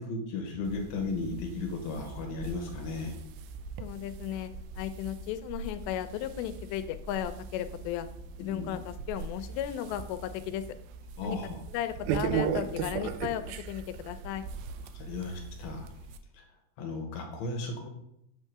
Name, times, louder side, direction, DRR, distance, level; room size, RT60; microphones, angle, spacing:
voice 1, 0.0-3.2 8.4-8.7 11.2-11.6 14.9-15.9 16.3-16.5 16.8-17.9, left 3 dB, 70° left, 2 dB, 2.7 m, -35 dB
sound 1, 0.6-16.2, right 7 dB, 85° right, 2.1 m, -39 dB
voice 2, 3.8-4.5 4.8-8.1 8.4-10.6 11.2-11.4 11.7-14.5, left 11 dB, 90° left, 11 dB, 2.8 m, -35 dB
8.3 x 3.6 x 6.6 m, 0.77 s
omnidirectional pair, 4.9 m